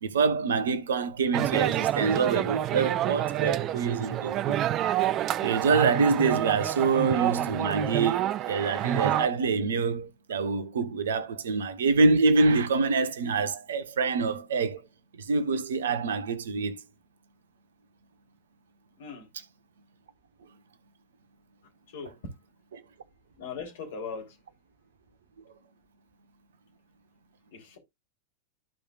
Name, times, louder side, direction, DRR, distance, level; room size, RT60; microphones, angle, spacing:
voice 1, 0.0-4.6 5.4-14.8 15.2-16.8 22.7-22.8, right 4 dB, 65° right, 1.2 m, -26 dB
sound 1, 1.3-9.3, right 12 dB, 35° right, 0.5 m, -28 dB
voice 2, 23.4-24.4 27.5-27.8, left 5 dB, 55° left, 3.6 m, -39 dB
14.0 x 5.1 x 2.5 m
figure-of-eight pair, 90°, 0 cm